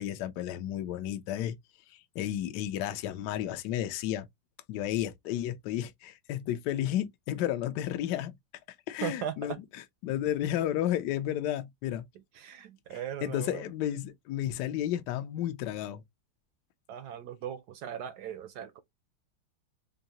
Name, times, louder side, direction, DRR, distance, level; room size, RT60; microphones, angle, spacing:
voice 1, 0.0-1.6 1.9-4.3 4.7-8.4 8.9-9.6 10.0-12.0 12.9-16.0, left 12 dB, 70° left, 1.1 m, -32 dB
voice 2, 9.0-9.6 12.3-13.7 16.9-18.8, right 9 dB, 70° right, 1.0 m, -38 dB
4.6 x 2.7 x 2.8 m
omnidirectional pair, 2.1 m